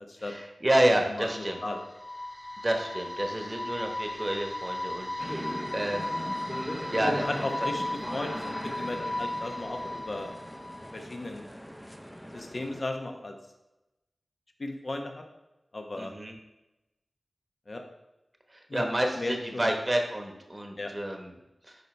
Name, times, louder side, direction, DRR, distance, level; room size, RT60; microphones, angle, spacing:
voice 1, 0.3-1.6 2.6-6.2 6.9-7.2 16.0-16.3 18.5-21.3 21.7-21.8, right 1 dB, 30° right, 3 dB, 1.0 m, -29 dB
sound 1, 1.0-11.1, left 2 dB, 35° left, 1.4 m, -36 dB
voice 2, 1.2-1.8 7.1-10.3 10.9-11.5 12.3-13.3 14.6-15.2 15.7-16.1 17.7-17.8 18.7-18.9 19.2-19.7 20.8-20.9, left 2 dB, 55° left, 4 dB, 0.9 m, -35 dB
sound 2, 5.2-12.8, equal, 5° left, 0.6 m, -39 dB
10.0 x 4.1 x 3.3 m, 0.98 s
wide cardioid pair, 50°, 0 cm